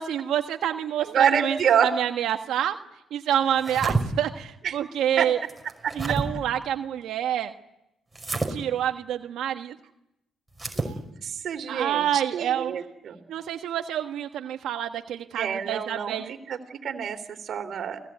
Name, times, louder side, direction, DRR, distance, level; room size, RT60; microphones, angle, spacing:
voice 1, 0.0-1.6 1.8-2.8 3.1-5.4 5.9-7.5 8.5-9.8 11.7-12.8 13.3-16.3, right 10 dB, 80° right, 5 dB, 1.4 m, -27 dB
voice 2, 1.1-1.9 4.6-4.8 5.2-5.3 5.8-6.1 10.8-13.2 15.4-16.1 16.5-18.0, right 8 dB, 60° right, 8 dB, 3.3 m, -27 dB
sound 1, 3.5-4.0 5.5-6.3 8.1-8.5 10.5-10.9, right 3 dB, 15° right, 5.6 m, -29 dB
30.0 x 18.0 x 9.5 m, 0.87 s
cardioid pair, 90°, 0 cm